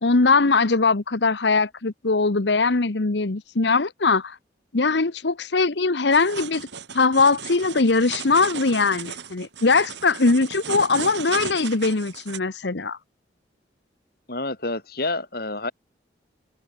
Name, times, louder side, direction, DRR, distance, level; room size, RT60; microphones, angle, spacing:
voice 1, 0.0-4.4 4.7-6.7 6.9-13.0, left 3 dB, 75° left, 1.1 m, -21 dB
sound 1, 6.1-12.4, right 7 dB, 75° right, 2.3 m, -35 dB
voice 2, 14.3-15.7, left 2 dB, 55° left, 3.8 m, -28 dB
head